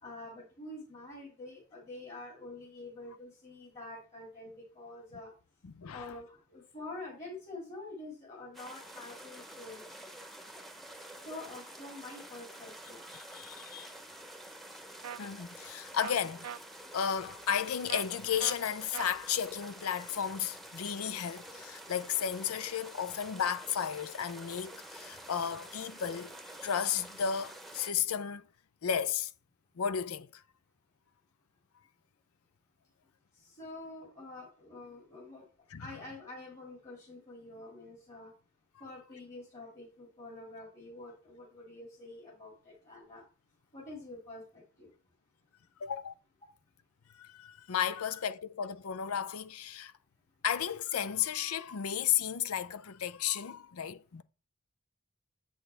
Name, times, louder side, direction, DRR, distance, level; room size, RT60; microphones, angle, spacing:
voice 1, 0.0-5.3 5.9-9.9 11.2-13.0 33.3-35.5 35.8-38.3 38.8-43.2 43.7-44.9 48.0-48.2, left 2 dB, 35° left, 2.5 m, -47 dB
voice 2, 5.6-6.2 13.1-13.9 15.2-16.6 16.9-26.3 26.6-28.4 28.8-29.3 29.8-30.4 35.7-35.9 38.8-38.9 45.8-46.1 47.2-49.9 50.4-54.2, left 8 dB, 85° left, 0.5 m, -34 dB
sound 1, 8.5-27.9, right 1 dB, ahead, 0.9 m, -49 dB
sound 2, 15.0-15.2 16.0-16.1 16.4-16.6 17.9-18.0 18.4-18.6 18.9-19.1, right 9 dB, 85° right, 0.4 m, -40 dB
7.8 x 6.3 x 3.4 m
head